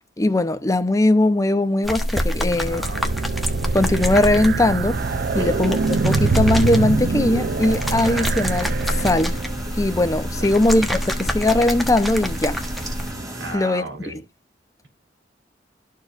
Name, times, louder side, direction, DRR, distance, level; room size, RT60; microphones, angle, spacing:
voice 1, 0.2-2.8 3.7-5.0 5.3-5.8 6.0-9.4 9.8-12.6 13.5-14.2, left 2 dB, 20° left, 0.7 m, -20 dB
sound 1, 1.8-13.1, equal, ahead, 1.1 m, -27 dB
sound 2, 2.2-9.6, right 4 dB, 60° right, 0.5 m, -25 dB
voice 2, 2.5-3.2 5.3-5.6 10.4-10.8 13.4-14.2, right 3 dB, 85° right, 3.3 m, -36 dB
sound 3, 4.9-13.6, right 1 dB, 20° right, 2.7 m, -34 dB
13.5 x 4.7 x 2.5 m
head